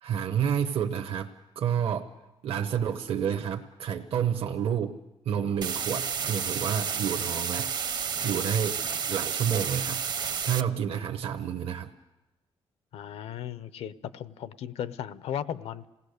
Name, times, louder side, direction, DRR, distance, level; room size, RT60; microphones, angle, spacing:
voice 1, 0.0-2.1 2.4-4.9 5.2-7.7 8.2-8.8 9.1-10.0 10.4-11.9, right 8 dB, 70° right, 5 dB, 0.9 m, -29 dB
sound 1, 5.6-10.6, right 7 dB, 45° right, 0.7 m, -31 dB
voice 2, 12.9-15.9, left 9 dB, 85° left, 15 dB, 0.7 m, -36 dB
27.5 x 18.0 x 6.6 m, 1.0 s
cardioid pair, 145°, 10 cm